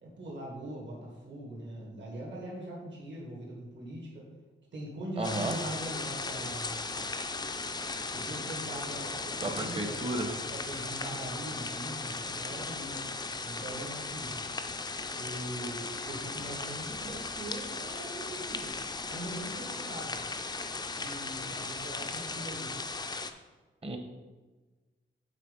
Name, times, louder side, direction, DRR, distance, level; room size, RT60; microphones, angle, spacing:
voice 1, 0.0-4.2 4.7-6.8 8.1-10.0 10.5-13.0 13.4-14.4 15.1-18.8 19.1-20.2 20.9-22.7, right 1 dB, 65° right, -3 dB, 2.0 m, -41 dB
sound 1, 5.2-23.3, left 3 dB, 20° left, 0.4 m, -37 dB
voice 2, 5.2-5.6 9.4-10.3 23.8-24.0, right 2 dB, 30° right, 4 dB, 0.9 m, -33 dB
7.6 x 4.1 x 5.2 m, 1.3 s
wide cardioid pair, 145°, 20 cm